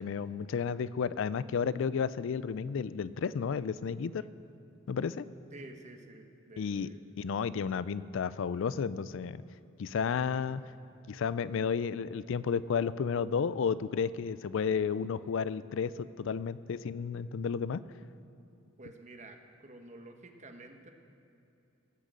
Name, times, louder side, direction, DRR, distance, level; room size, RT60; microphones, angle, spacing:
voice 1, 0.0-4.2 4.9-5.3 6.6-6.9 7.2-9.4 9.8-10.6 11.1-17.8, left 6 dB, 65° left, 17 dB, 0.4 m, -32 dB
voice 2, 5.5-7.2 10.2-10.4 18.8-20.9, right 2 dB, 35° right, 5 dB, 1.0 m, -50 dB
15.5 x 6.4 x 7.5 m, 2.7 s
head